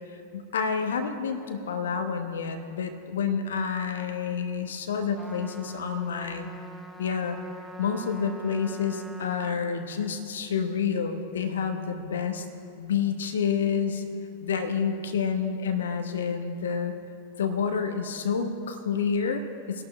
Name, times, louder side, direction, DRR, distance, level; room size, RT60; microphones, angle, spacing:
voice 1, 0.1-6.5 7.0-7.4 7.8-12.4 12.8-14.0 14.4-16.9 17.4-19.8, left 6 dB, 65° left, 7 dB, 1.1 m, -29 dB
Trumpet, 5.1-9.6, right 1 dB, ahead, 0.9 m, -44 dB
24.0 x 12.0 x 2.3 m, 2.4 s
figure-of-eight pair, 90°, 0 cm